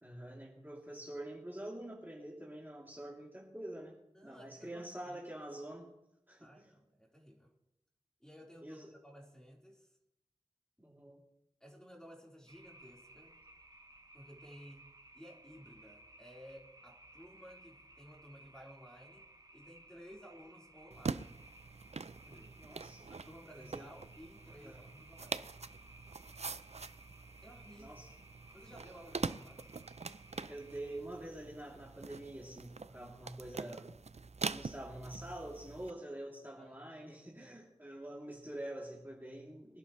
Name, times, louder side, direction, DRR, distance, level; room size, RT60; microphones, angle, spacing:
voice 1, 0.0-3.9 4.2-5.9 6.3-6.8 8.6-8.9 10.8-11.2 22.6-23.1 23.5-23.9 24.5-24.8 27.8-28.1 30.5-33.9 34.5-39.8, right 1 dB, 15° right, -4 dB, 3.0 m, -46 dB
voice 2, 4.1-5.4 6.4-7.5 8.2-9.9 11.6-13.4 14.1-14.9 15.1-21.4 22.2-22.5 23.1-25.5 27.4-28.0 28.5-29.7 36.6-37.3, equal, 5° left, -3 dB, 4.1 m, -56 dB
sound 1, 12.5-31.0, right 1 dB, 30° right, 1.1 m, -59 dB
sound 2, 20.9-35.9, right 4 dB, 65° right, 0.5 m, -44 dB
23.5 x 11.0 x 3.2 m, 0.86 s
wide cardioid pair, 40°, 12 cm